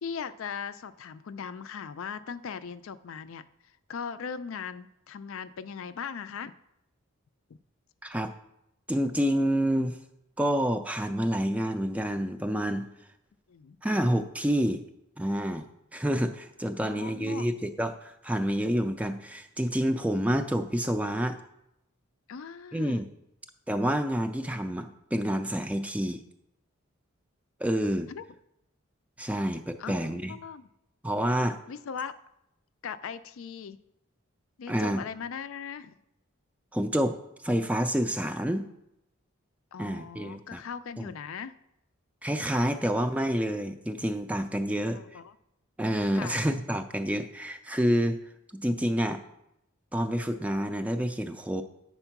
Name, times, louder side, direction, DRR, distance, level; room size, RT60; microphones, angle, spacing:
voice 1, 0.0-3.5 3.9-6.5 13.5-13.8 16.8-17.5 22.3-23.0 28.1-28.2 29.8-30.6 31.7-32.1 32.8-33.8 34.6-36.0 39.7-41.5 44.9-45.4 46.1-46.4, left 6 dB, 70° left, 14 dB, 0.4 m, -39 dB
voice 2, 8.0-8.3 8.9-10.0 10.4-12.9 13.8-14.9 15.2-15.7 15.9-21.4 22.7-23.1 23.7-26.2 27.6-28.1 29.2-30.4 31.0-31.6 34.7-35.0 36.7-37.2 37.4-38.7 39.8-40.6 41.0-41.1 42.2-45.2 45.8-48.2 48.5-49.2 49.9-51.6, equal, 5° right, 8 dB, 0.3 m, -28 dB
8.9 x 4.4 x 5.8 m, 0.83 s
head